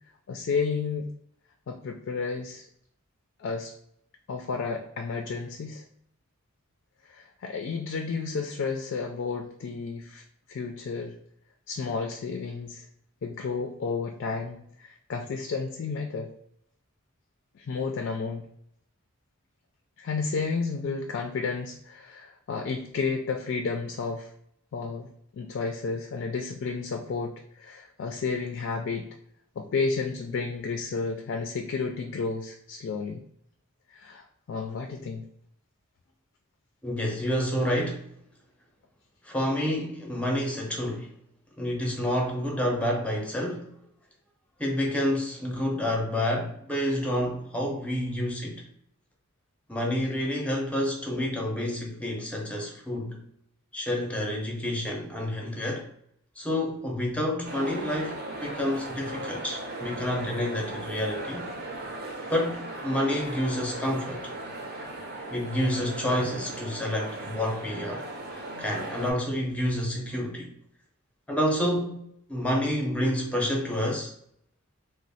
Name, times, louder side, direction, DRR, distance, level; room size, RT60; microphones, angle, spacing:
voice 1, 0.3-1.1 1.7-2.7 3.4-3.7 4.3-5.8 7.1-10.2 10.5-11.2 11.7-12.9 13.2-16.3 17.6-18.4 20.0-24.3 24.7-29.1 29.6-33.2 33.9-35.2, left 4 dB, 55° left, 0.3 m, -32 dB
voice 2, 36.8-38.1 39.2-41.1 41.6-43.7 44.6-48.6 49.7-53.2 53.7-55.9 56.4-61.5 62.3-64.3 65.3-68.0 68.6-70.5 71.3-72.0 72.3-74.1, left 1 dB, 5° left, 0.6 m, -29 dB
sound 1, 57.4-69.1, right 1 dB, 50° right, 0.6 m, -37 dB
3.0 x 2.0 x 4.0 m
head